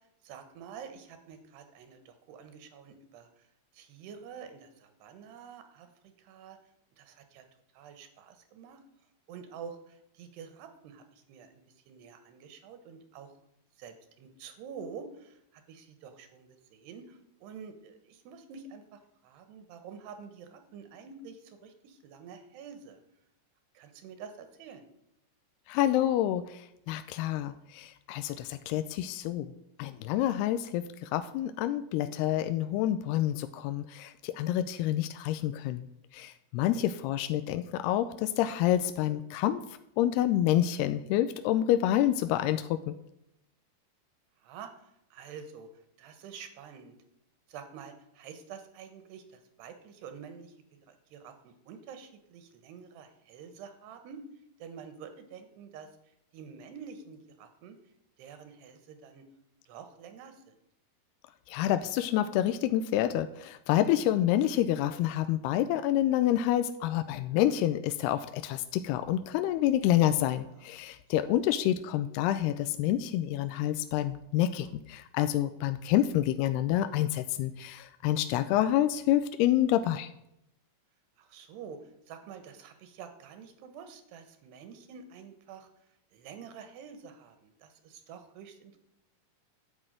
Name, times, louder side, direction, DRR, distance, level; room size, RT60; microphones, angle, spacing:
voice 1, 0.2-3.4 3.7-6.6 7.0-7.5 7.7-8.8 9.3-11.5 11.9-13.3 13.8-23.0 23.8-24.9 44.4-45.7 46.0-47.0 47.5-50.5 50.9-54.2 54.6-55.9 56.3-57.8 58.2-59.3 59.7-60.5 70.6-70.7 71.2-71.5 74.6-74.7 76.2-76.3 81.2-81.8 82.1-85.7 86.1-88.8, right 6 dB, 85° right, 8 dB, 3.5 m, -48 dB
voice 2, 25.7-26.6 26.9-29.5 29.8-35.9 36.1-39.6 40.0-42.9 61.5-80.1, left 12 dB, 85° left, 10 dB, 2.6 m, -28 dB
12.0 x 6.3 x 9.0 m, 0.81 s
omnidirectional pair, 4.7 m